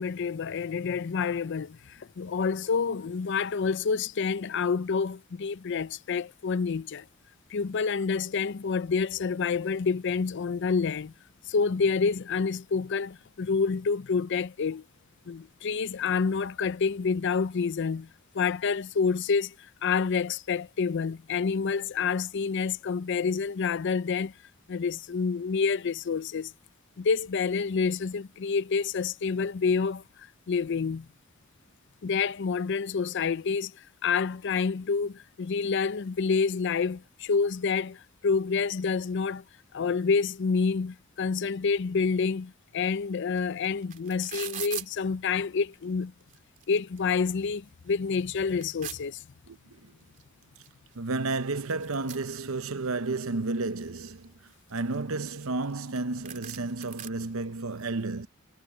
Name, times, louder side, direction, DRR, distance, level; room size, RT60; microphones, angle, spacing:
voice 1, 0.0-7.1 7.5-11.1 11.4-14.8 15.3-18.1 18.3-19.5 19.8-24.3 24.7-26.5 27.0-31.1 32.0-39.4 39.7-46.1 46.7-49.2, left 5 dB, 60° left, 0.5 m, -28 dB
sound 1, 43.4-43.5 43.6-44.9 45.7-45.8 46.2-47.0 47.4-47.5 47.9-49.0 50.2-50.3 50.6-50.7 50.9-52.9 53.3-54.0 54.5-55.7 56.0-56.1 56.3-57.1, right 10 dB, 40° right, 3.0 m, -41 dB
voice 2, 49.5-49.9 50.9-58.3, right 3 dB, 80° right, 0.9 m, -32 dB
head